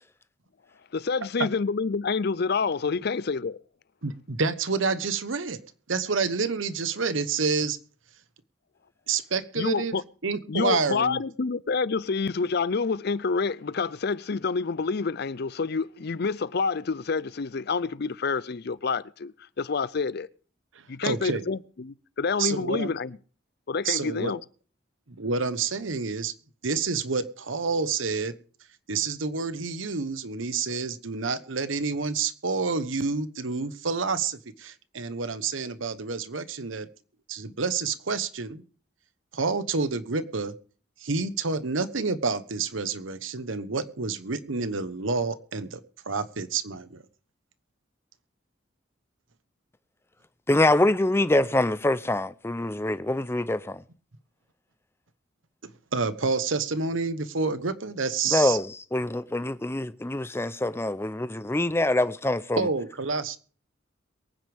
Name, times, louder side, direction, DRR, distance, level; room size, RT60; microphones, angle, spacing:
voice 1, 0.9-3.6 9.6-10.0 10.5-20.3 20.9-23.2 23.7-24.4, left 4 dB, 55° left, 0.5 m, -28 dB
voice 2, 4.0-5.6 5.9-7.8 9.1-9.9 10.2-11.2 21.0-21.4 22.4-22.9 23.8-24.3 25.1-26.3 26.6-28.3 28.9-36.9 37.3-38.6 39.3-40.5 41.0-45.8 46.1-47.0 55.9-58.6 62.6-63.4, right 4 dB, 85° right, 1.1 m, -28 dB
voice 3, 50.5-53.8 58.3-62.7, left 1 dB, 15° left, 0.6 m, -25 dB
23.0 x 9.5 x 3.5 m
head